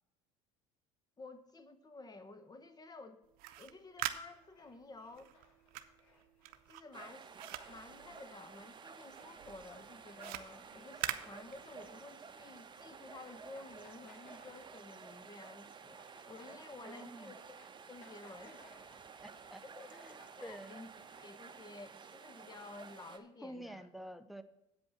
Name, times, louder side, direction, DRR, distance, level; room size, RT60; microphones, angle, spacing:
voice 1, 1.2-3.2 3.6-5.3 6.7-7.3 7.7-17.6 17.9-18.7 19.6-20.9 21.2-23.9, left 3 dB, 25° left, 10 dB, 1.1 m, -52 dB
sound 1, 3.2-8.8 9.1-12.0, right 13 dB, 70° right, 0.7 m, -44 dB
sound 2, 4.2-12.6 12.8-13.0 13.3-15.1 15.4-19.1 19.5-19.6 19.8-21.3, left 1 dB, 80° left, 3.6 m, -64 dB
sound 3, 6.9-23.2, right 6 dB, 30° right, 0.9 m, -53 dB
voice 2, 16.8-17.3 19.2-19.6 19.9-20.8 23.4-24.4, right 1 dB, ahead, 12 dB, 0.7 m, -49 dB
8.4 x 5.3 x 7.1 m, 0.88 s
supercardioid pair, 80°, 16 cm